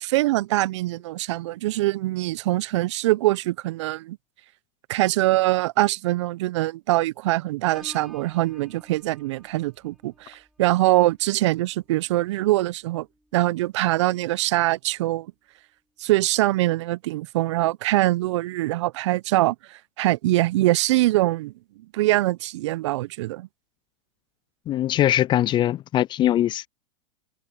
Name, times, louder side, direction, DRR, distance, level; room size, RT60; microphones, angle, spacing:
voice 1, 0.0-4.2 4.9-13.1 13.3-15.3 16.0-21.5 21.9-23.5, right 17 dB, 65° right, 0.8 m, -23 dB
Piano, 7.7-13.4 13.8-14.2, equal, ahead, 4.9 m, -53 dB
voice 2, 24.7-26.7, left 12 dB, 30° left, 0.4 m, -21 dB
hypercardioid pair, 100°, 16 cm